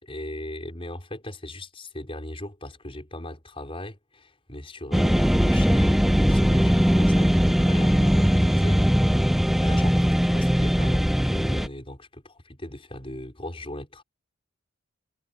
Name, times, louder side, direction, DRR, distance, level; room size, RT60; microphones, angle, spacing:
voice 1, 0.0-8.8 9.2-14.0, left 1 dB, 25° left, 5.5 m, -38 dB
sound 1, 4.9-11.7, equal, ahead, 0.4 m, -20 dB
head